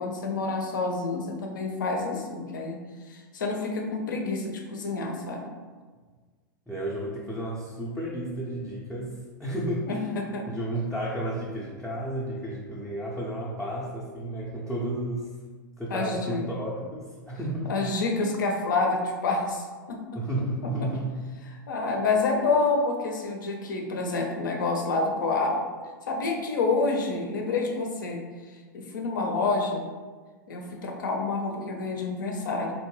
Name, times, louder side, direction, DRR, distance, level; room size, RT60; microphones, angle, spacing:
voice 1, 0.0-2.8 3.1-5.4 9.9-10.4 15.9-16.5 17.7-20.0 20.6-20.9 21.5-25.6 26.1-28.2 28.7-29.9 30.5-32.7, left 3 dB, 70° left, 2 dB, 0.5 m, -28 dB
voice 2, 6.7-10.1 10.5-15.3 15.8-17.8 20.1-21.1, right 1 dB, 5° left, -7 dB, 0.4 m, -32 dB
2.7 x 2.0 x 3.0 m, 1.4 s
figure-of-eight pair, 95°, 11 cm